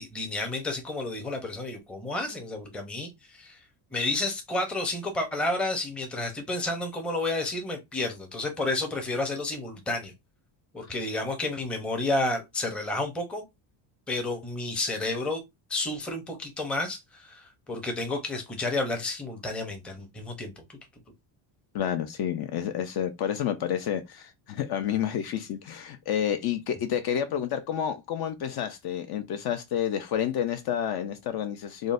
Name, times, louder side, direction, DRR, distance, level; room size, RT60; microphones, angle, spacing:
voice 1, 0.0-3.6 3.9-10.1 10.7-13.4 14.1-15.4 15.7-20.8, left 2 dB, ahead, 0.5 m, -31 dB
voice 2, 21.7-31.9, left 9 dB, 50° left, 0.5 m, -29 dB
3.7 x 2.1 x 2.4 m
cardioid pair, 125°, 49 cm